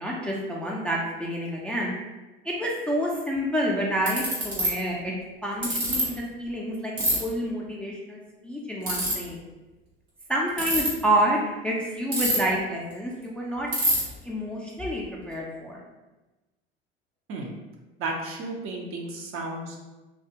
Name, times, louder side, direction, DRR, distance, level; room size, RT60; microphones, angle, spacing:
voice 1, 0.0-1.9 2.4-5.1 5.4-6.9 7.2-9.4 10.3-13.7 14.2-15.8, right 1 dB, 5° left, -3 dB, 0.4 m, -28 dB
Ratchet pawl, 3.4-3.5 4.1-4.7 5.6-6.0 7.0-7.2 8.8-9.1 10.5-10.9 12.1-12.6 12.9-13.0 13.2-13.3 13.7-14.0, right 2 dB, 90° right, 1.1 m, -24 dB
voice 2, 18.0-19.8, right 2 dB, 45° right, 0 dB, 0.6 m, -33 dB
2.3 x 2.3 x 2.7 m, 1.1 s
hypercardioid pair, 70°, 31 cm